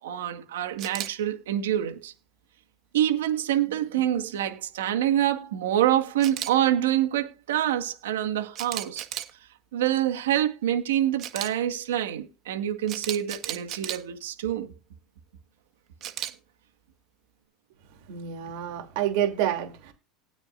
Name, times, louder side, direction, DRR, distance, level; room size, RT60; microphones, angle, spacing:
voice 1, 0.0-2.1 2.9-9.1 9.7-14.7, right 11 dB, 90° right, 1.9 m, -26 dB
Camera, 0.8-1.1 6.2-6.5 8.5-9.3 11.2-11.5 12.9-14.0 16.0-16.3, right 12 dB, 50° right, 1.6 m, -33 dB
voice 2, 18.1-19.9, right 11 dB, 70° right, 3.1 m, -28 dB
18.5 x 6.3 x 2.6 m
supercardioid pair, 110°, 0 cm